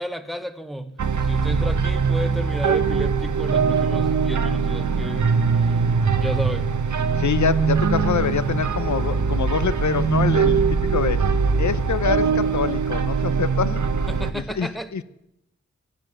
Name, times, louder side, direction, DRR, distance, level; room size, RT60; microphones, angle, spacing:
voice 1, 0.0-5.3 5.6-5.7 6.1-6.7 14.1-14.9, equal, ahead, 1.1 m, -32 dB
sound 1, 1.0-14.3, right 5 dB, 85° right, 1.0 m, -22 dB
voice 2, 7.2-11.2 11.6-13.8 14.3-15.0, left 7 dB, 75° left, 0.7 m, -25 dB
15.0 x 9.5 x 8.0 m
wide cardioid pair, 75°, 29 cm